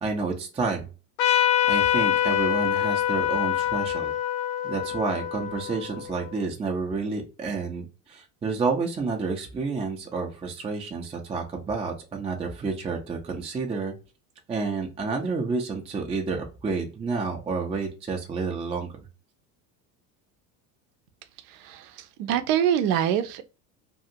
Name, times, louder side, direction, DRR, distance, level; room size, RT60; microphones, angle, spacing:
voice 1, 0.0-0.9 1.7-4.1 4.6-13.9 14.5-18.9, right 4 dB, 15° right, 0.4 m, -30 dB
Trumpet, 1.2-6.3, left 10 dB, 65° left, 0.7 m, -25 dB
voice 2, 21.5-23.4, right 10 dB, 70° right, 0.6 m, -25 dB
2.7 x 2.4 x 2.6 m
hypercardioid pair, 70°, 49 cm